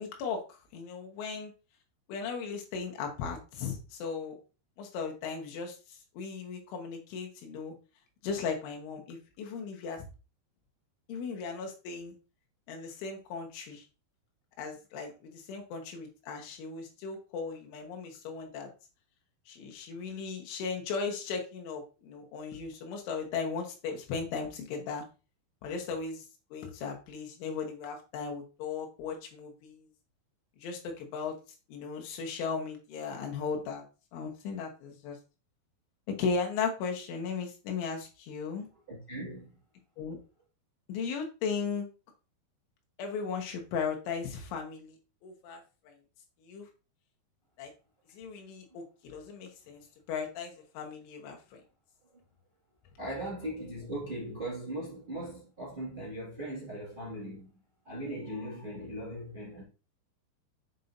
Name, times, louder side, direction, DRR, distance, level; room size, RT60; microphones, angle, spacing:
voice 1, 0.0-1.5 2.1-4.4 4.8-7.8 8.2-10.0 11.1-12.2 12.7-13.9 14.6-18.7 19.5-25.1 25.6-29.9 30.6-31.4 31.7-33.8 34.1-35.2 36.1-38.7 40.0-40.2 40.9-41.9 43.0-45.0 45.2-46.0 46.4-46.7 47.6-47.7 48.1-51.6, left 5 dB, 85° left, 3.7 m, -37 dB
voice 2, 38.9-39.5 53.0-59.6, right 1 dB, 55° right, 0.5 m, -39 dB
7.6 x 5.3 x 2.6 m
omnidirectional pair, 5.4 m